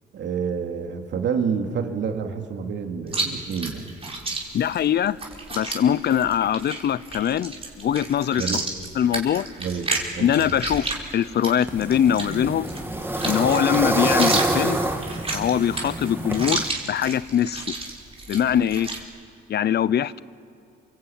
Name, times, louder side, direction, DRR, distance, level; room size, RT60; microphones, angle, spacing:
voice 1, 0.1-3.9 8.3-8.6 9.6-9.9 10.1-10.5, right 6 dB, 65° right, 4 dB, 2.6 m, -28 dB
Chewing mastication, 3.1-19.0, right 3 dB, 30° right, 4.7 m, -32 dB
voice 2, 4.5-5.2 5.5-8.6 8.9-9.5 10.2-12.7 13.2-14.8 15.3-17.7 18.3-18.9 19.5-20.2, left 9 dB, 55° left, 18 dB, 0.7 m, -22 dB
sound 1, 11.7-16.7, right 1 dB, 10° right, 2.2 m, -26 dB
28.0 x 24.0 x 8.9 m, 2.5 s
cardioid pair, 90°, 20 cm